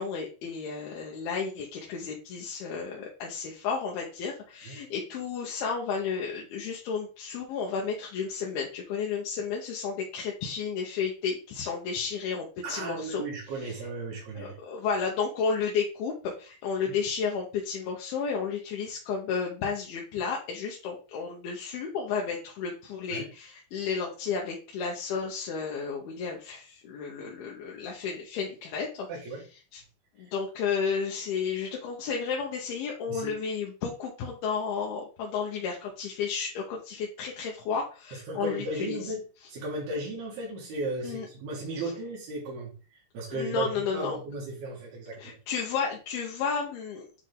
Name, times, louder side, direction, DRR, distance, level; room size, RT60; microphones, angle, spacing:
voice 1, 0.0-13.2 14.4-29.1 29.7-29.8 30.2-39.0 41.0-41.3 43.3-44.1 45.2-47.1, left 6 dB, 80° left, -1 dB, 3.0 m, -32 dB
voice 2, 12.6-14.6 16.9-17.0 23.1-23.3 29.1-29.4 30.2-30.3 33.1-33.3 38.1-39.2 39.5-45.4, right 2 dB, 80° right, -3 dB, 3.9 m, -35 dB
9.8 x 3.5 x 3.9 m, 0.35 s
omnidirectional pair, 4.4 m